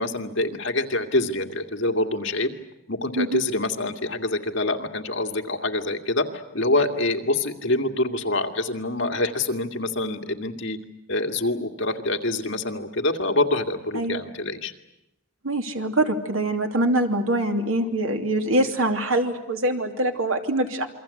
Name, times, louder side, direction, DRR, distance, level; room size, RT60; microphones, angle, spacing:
voice 1, 0.0-2.5 2.9-10.8 11.1-14.7, left 2 dB, 65° left, 5 dB, 2.3 m, -26 dB
voice 2, 15.4-20.9, right 1 dB, 90° right, 5 dB, 2.9 m, -24 dB
28.0 x 23.5 x 8.5 m, 0.87 s
head